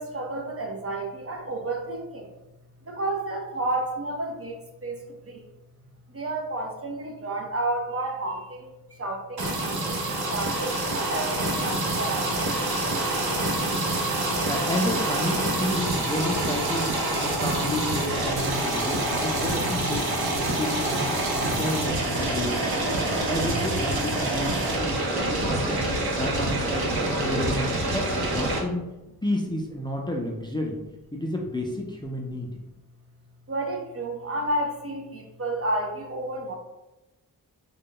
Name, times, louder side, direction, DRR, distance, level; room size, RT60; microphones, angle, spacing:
voice 1, 0.0-2.3 2.9-5.4 6.1-12.5 33.5-36.5, right 2 dB, 40° right, 2 dB, 0.6 m, -31 dB
sound 1, 9.4-28.6, right 2 dB, 75° right, 0.8 m, -26 dB
voice 2, 14.5-16.9 17.2-20.1 20.5-22.9 23.3-25.8 26.2-28.8 29.2-30.8 31.1-32.5, left 1 dB, 10° left, -1 dB, 0.4 m, -31 dB
3.8 x 2.2 x 3.7 m, 1.0 s
wide cardioid pair, 115°, 38 cm